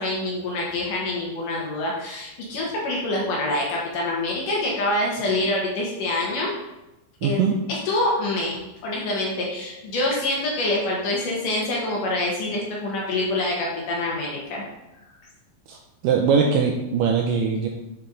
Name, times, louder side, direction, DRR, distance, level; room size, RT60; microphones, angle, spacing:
voice 1, 0.0-6.5 7.2-7.4 7.7-14.7, left 2 dB, 65° left, -3 dB, 2.6 m, -26 dB
voice 2, 7.2-7.6 15.7-15.8 16.0-17.7, right 6 dB, 85° right, 1 dB, 2.0 m, -21 dB
7.4 x 4.3 x 3.8 m, 0.95 s
omnidirectional pair, 4.4 m